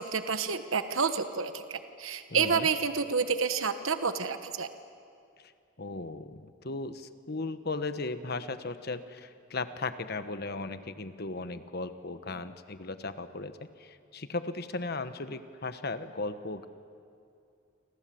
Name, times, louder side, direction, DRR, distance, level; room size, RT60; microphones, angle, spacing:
voice 1, 0.0-4.7, right 5 dB, 75° right, 9 dB, 1.2 m, -29 dB
voice 2, 2.3-2.7 5.4-5.5 5.8-16.7, left 3 dB, 50° left, 10 dB, 1.2 m, -36 dB
28.5 x 26.0 x 7.8 m, 2.5 s
head